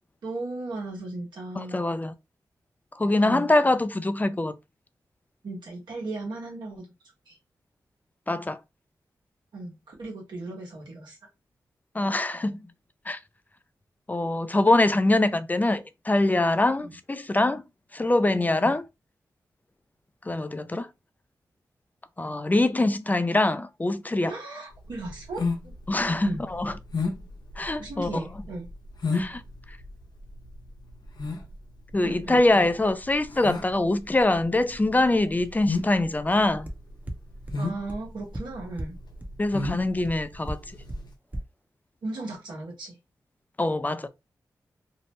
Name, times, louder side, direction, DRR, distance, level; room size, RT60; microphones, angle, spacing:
voice 1, 0.2-1.9 3.2-3.5 5.4-6.9 7.3-7.4 9.5-11.2 16.8-17.0 18.6-18.7 24.3-25.7 26.2-26.5 27.8-28.7 32.0-32.4 37.6-39.0 42.0-43.0, right 2 dB, 85° right, 1.2 m, -36 dB
voice 2, 1.6-2.1 2.9-4.5 8.3-8.6 11.9-12.6 13.1-13.2 14.1-17.6 17.9-18.8 20.3-20.9 22.2-24.3 25.9-26.7 27.6-28.2 29.1-29.4 31.9-36.7 39.4-40.6 43.6-44.1, left 2 dB, 20° left, 0.4 m, -24 dB
sound 1, 24.8-41.1, left 3 dB, 65° left, 0.7 m, -33 dB
sound 2, 36.7-36.8 37.1-37.2 37.5-37.6 37.9-38.0 38.3-38.4 38.8-38.9 39.2-39.3 39.6-39.7 40.0-40.1 40.5-40.6 40.9-41.0 41.3-41.4, right 1 dB, 20° right, 0.6 m, -33 dB
2.7 x 2.0 x 3.0 m
cardioid pair, 40°, 8 cm